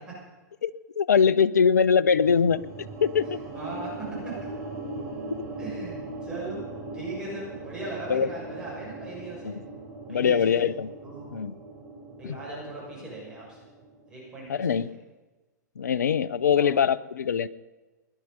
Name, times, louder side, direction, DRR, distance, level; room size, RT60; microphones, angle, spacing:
voice 1, 1.0-3.4 5.3-5.4 8.1-8.3 9.4-9.6 10.1-10.9 11.3-11.5 12.2-12.4 14.5-14.9 15.8-17.5, left 7 dB, 70° left, 16 dB, 0.6 m, -23 dB
sound 1, 2.1-14.3, right 2 dB, 35° right, 4.5 m, -40 dB
voice 2, 3.5-3.9 4.2-4.6 5.6-6.0 6.2-6.6 6.9-9.5 10.1-10.7 11.0-11.4 12.2-13.6 14.1-14.7 16.5-16.7, right 2 dB, 10° right, -6 dB, 6.6 m, -38 dB
18.5 x 11.0 x 5.4 m, 1.2 s
figure-of-eight pair, 100°, 10 cm